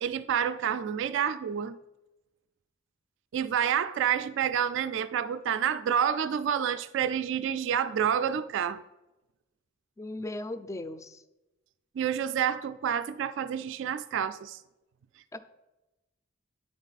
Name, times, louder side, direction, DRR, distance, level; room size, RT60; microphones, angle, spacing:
voice 1, 0.0-1.8 3.3-8.8 12.0-14.6, right 8 dB, 65° right, 0.3 m, -28 dB
voice 2, 10.0-11.2 15.3-15.4, left 2 dB, 15° left, 0.3 m, -37 dB
9.5 x 4.5 x 4.0 m
head